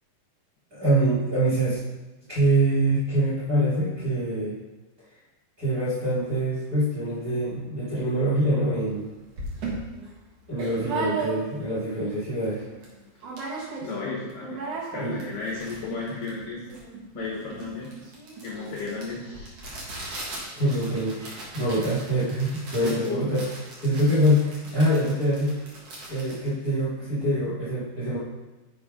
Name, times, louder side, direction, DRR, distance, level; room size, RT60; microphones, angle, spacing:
voice 1, 0.7-1.8 2.3-4.6 5.6-9.1 10.5-12.6 15.0-15.3 20.5-23.4 23.8-25.6 26.1-28.2, right 1 dB, 25° right, -10 dB, 2.0 m, -24 dB
sound 1, 8.9-9.0 9.4-11.7 12.2-12.3 12.4-12.9 13.2-14.0 14.3-27.4, right 3 dB, 60° right, 1.7 m, -37 dB
voice 2, 13.8-14.6 14.9-16.6 17.1-17.9 18.4-19.5 22.8-23.3, left 4 dB, 80° left, -3 dB, 1.9 m, -33 dB
7.0 x 5.1 x 4.9 m, 1.1 s
omnidirectional pair, 5.5 m